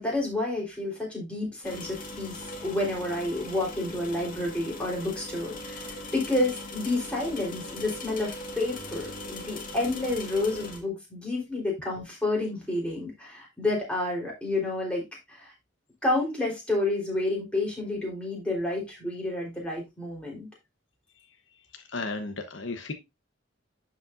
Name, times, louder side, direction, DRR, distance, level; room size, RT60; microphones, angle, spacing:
voice 1, 0.0-15.5 16.0-20.5, left 2 dB, 5° left, 3.7 m, -30 dB
sound 1, 1.6-10.8, left 1 dB, 45° left, 1.8 m, -40 dB
voice 2, 21.7-22.9, left 3 dB, 70° left, 1.0 m, -34 dB
11.5 x 5.2 x 2.6 m
head